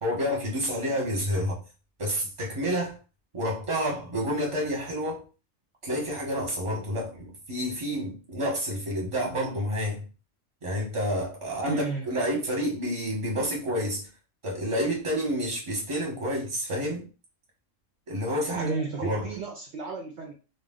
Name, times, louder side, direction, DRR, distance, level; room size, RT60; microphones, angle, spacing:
voice 1, 0.0-1.6 2.0-2.9 3.3-5.2 5.8-10.0 10.6-14.1 14.4-17.0 18.1-19.3, equal, 25° right, -2 dB, 1.0 m, -29 dB
voice 2, 11.7-12.1 18.5-20.3, right 4 dB, 65° right, 0 dB, 0.8 m, -33 dB
2.3 x 2.2 x 3.6 m, 0.34 s
omnidirectional pair, 1.4 m